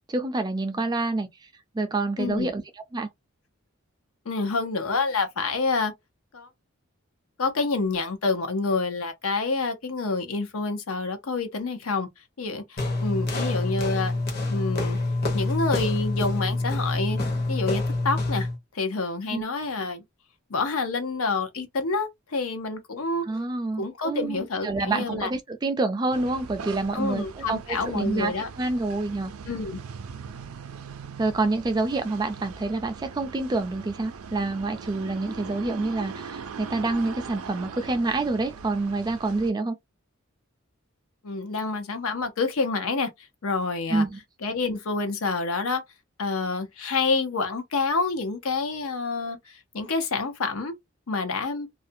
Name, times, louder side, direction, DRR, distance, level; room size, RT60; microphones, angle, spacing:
voice 1, 0.1-1.3 1.7-2.6 2.9-3.1 19.3-19.4 23.3-29.3 31.2-39.8 43.9-44.2, right 2 dB, 20° right, 0.3 m, -27 dB
voice 2, 2.2-2.5 4.3-5.9 6.3-6.5 7.4-12.1 12.4-14.2 14.5-15.0 15.3-17.2 17.5-18.5 18.7-20.0 20.5-23.3 23.8-25.3 26.9-28.5 29.5-29.8 41.2-44.0 44.4-45.8 46.2-50.8 51.1-51.7, left 3 dB, 85° left, 0.7 m, -28 dB
sound 1, 12.8-18.6, left 2 dB, 50° left, 0.8 m, -26 dB
sound 2, 26.1-39.5, right 6 dB, 85° right, 0.4 m, -41 dB
2.5 x 2.2 x 2.6 m
head